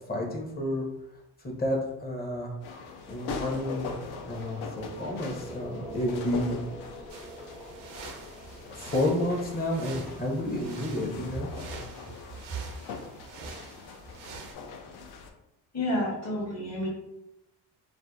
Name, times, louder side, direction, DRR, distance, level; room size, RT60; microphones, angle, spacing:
voice 1, 0.1-0.8 1.4-2.5 3.1-3.9 4.3-6.6 8.7-11.5, left 1 dB, 25° left, 0 dB, 0.7 m, -30 dB
sound 1, 2.6-15.3, left 5 dB, 75° left, 0.5 m, -42 dB
sound 2, 4.3-12.3, equal, 10° right, 0.5 m, -47 dB
sound 3, 7.1-14.5, right 4 dB, 85° right, 0.6 m, -46 dB
voice 2, 15.7-16.9, left 1 dB, 40° left, -3 dB, 1.1 m, -29 dB
2.7 x 2.1 x 2.2 m, 0.88 s
cardioid pair, 75°, 38 cm